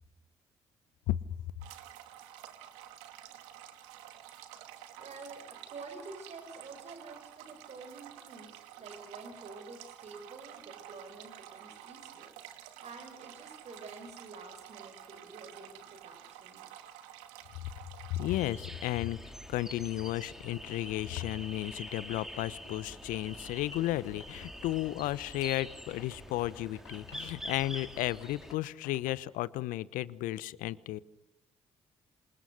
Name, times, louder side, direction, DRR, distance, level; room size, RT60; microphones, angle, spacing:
sound 1, 1.6-18.4, right 11 dB, 75° right, 2.4 m, -50 dB
voice 1, 5.0-16.6, right 3 dB, 50° right, 7 dB, 5.9 m, -49 dB
voice 2, 18.1-31.0, left 15 dB, 70° left, 18 dB, 1.1 m, -34 dB
sound 2, 18.3-28.5, equal, 5° right, 4.9 m, -46 dB
sound 3, 19.9-20.0 20.1-29.1, left 6 dB, 90° left, 3.3 m, -54 dB
28.0 x 26.0 x 6.6 m, 0.78 s
hypercardioid pair, 45°, 14 cm